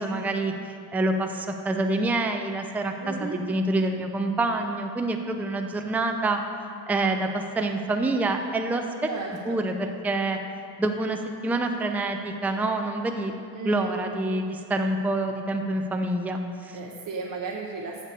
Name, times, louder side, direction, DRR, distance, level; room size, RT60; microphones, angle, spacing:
voice 1, 0.0-6.4 6.9-8.8 9.5-10.4 10.8-13.3 13.7-16.8, right 2 dB, 5° right, 4 dB, 0.4 m, -27 dB
voice 2, 3.0-3.4 9.1-9.6 13.5-14.0 16.7-18.0, right 4 dB, 45° right, -1 dB, 0.8 m, -35 dB
7.4 x 6.6 x 6.6 m, 2.5 s
cardioid pair, 125°, 45 cm